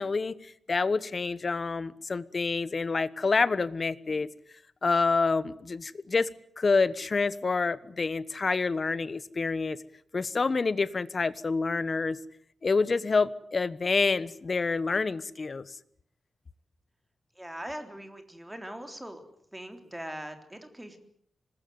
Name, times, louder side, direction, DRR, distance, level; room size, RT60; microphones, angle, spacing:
voice 1, 0.0-4.3 4.8-6.3 6.6-9.8 10.1-12.2 12.6-15.8, left 4 dB, 35° left, 16 dB, 1.2 m, -27 dB
voice 2, 17.4-19.2 19.5-21.0, right 1 dB, 10° right, 6 dB, 3.7 m, -41 dB
26.0 x 20.5 x 9.5 m, 0.66 s
wide cardioid pair, 145°, 0 cm